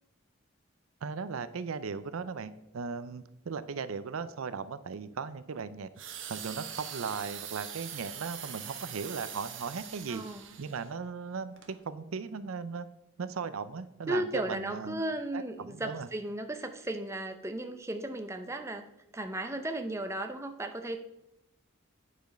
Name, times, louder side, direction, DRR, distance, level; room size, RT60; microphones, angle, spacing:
voice 1, 1.0-5.9 6.3-10.2 10.6-12.9 13.2-15.0 15.3-16.1, right 5 dB, 80° right, 14 dB, 0.5 m, -37 dB
sound 1, 6.0-10.9 11.6-11.7, right 9 dB, 60° right, 1.0 m, -43 dB
voice 2, 10.1-10.5 14.1-18.9 19.1-21.0, right 1 dB, 15° right, 6 dB, 0.6 m, -35 dB
9.0 x 5.1 x 5.2 m, 0.87 s
head